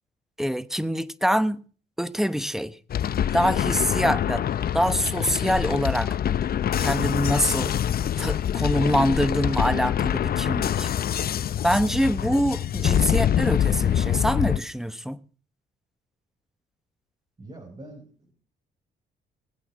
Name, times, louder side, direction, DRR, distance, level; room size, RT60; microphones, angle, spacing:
voice 1, 0.4-1.6 2.0-2.8 3.3-4.4 4.7-6.2 6.8-7.7 8.2-10.9 11.6-15.2, equal, ahead, 0.9 m, -25 dB
sound 1, 2.9-14.6, left 10 dB, 50° left, 0.6 m, -25 dB
voice 2, 17.4-18.3, right 1 dB, 25° right, 5.4 m, -44 dB
20.0 x 8.2 x 6.1 m
cardioid pair, 90°, 20 cm